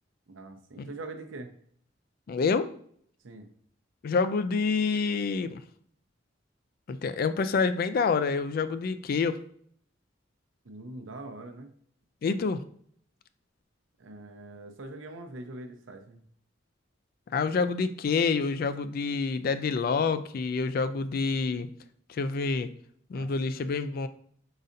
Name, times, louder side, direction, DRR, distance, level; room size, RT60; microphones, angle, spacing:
voice 1, 0.3-1.5 3.2-3.5 10.6-11.7 14.0-16.2 23.1-23.6, right 2 dB, 90° right, 5 dB, 0.7 m, -43 dB
voice 2, 2.3-2.7 4.0-5.6 6.9-9.4 12.2-12.6 17.3-21.7 22.1-22.7 23.1-24.1, left 4 dB, 50° left, 12 dB, 0.3 m, -27 dB
5.1 x 4.0 x 2.6 m, 0.62 s
head